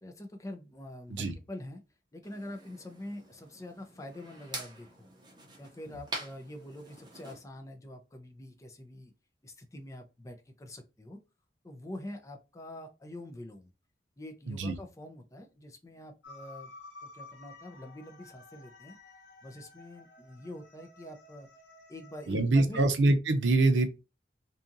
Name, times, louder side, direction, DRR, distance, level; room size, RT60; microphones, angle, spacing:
voice 1, 0.0-1.8 2.1-5.1 5.6-9.1 9.4-11.2 11.6-13.7 14.2-16.7 17.1-19.0 19.4-21.5 21.9-22.8, left 1 dB, 20° left, 0.5 m, -45 dB
sound 1, 2.2-7.4, right 2 dB, 25° right, 0.7 m, -45 dB
sound 2, 16.2-22.3, left 3 dB, 80° left, 0.6 m, -52 dB
voice 2, 22.3-23.9, right 2 dB, 90° right, 0.6 m, -24 dB
2.7 x 2.4 x 2.6 m
head